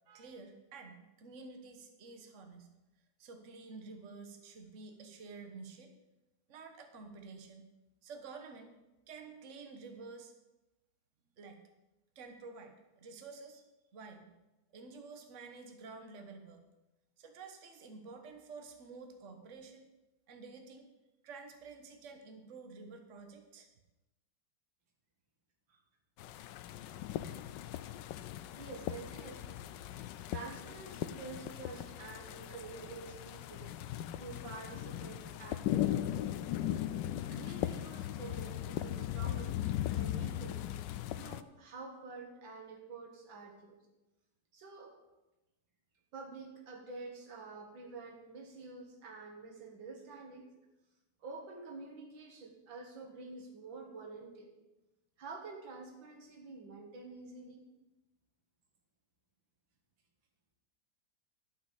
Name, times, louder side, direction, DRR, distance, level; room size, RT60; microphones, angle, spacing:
voice 1, 0.1-2.7 3.2-5.9 6.5-7.6 8.0-8.7 9.1-10.3 11.4-11.6 12.1-13.6 13.9-14.3 14.7-16.7 17.2-19.9 20.3-20.9 21.2-23.7, right 4 dB, 45° right, 5 dB, 1.5 m, -50 dB
sound 1, 26.2-41.4, left 12 dB, 80° left, 1.2 m, -38 dB
voice 2, 28.6-29.6 30.3-33.7 34.2-36.1 37.3-39.6 39.9-40.6 41.2-43.8 44.5-45.0 46.1-50.5 51.2-54.5 55.2-57.7, right 4 dB, 90° right, 3 dB, 2.6 m, -48 dB
12.5 x 5.9 x 8.5 m, 1.0 s
omnidirectional pair, 2.0 m